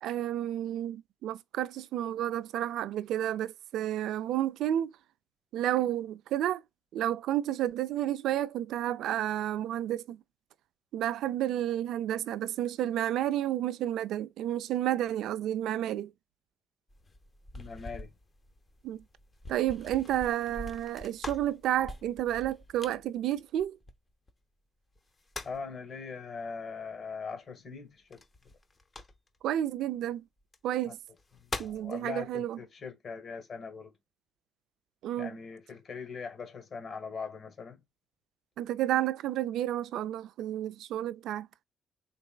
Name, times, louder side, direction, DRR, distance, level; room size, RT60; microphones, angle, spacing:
voice 1, 0.0-4.9 5.5-6.6 6.9-10.2 10.9-16.1 18.8-19.0 19.5-23.8 29.4-30.2 30.6-31.0 31.6-32.6 35.0-35.3 38.6-41.5, right 12 dB, 85° right, 0.3 m, -31 dB
sound 1, 16.9-24.3 25.0-25.7 28.1-29.5 30.4-30.6 31.1-31.9, left 2 dB, 30° left, 0.8 m, -44 dB
voice 2, 17.5-18.1 25.4-28.2 30.9-31.0 31.4-33.9 35.2-37.8, left 5 dB, 50° left, 1.4 m, -41 dB
3.9 x 3.3 x 2.2 m
cardioid pair, 90°, 0 cm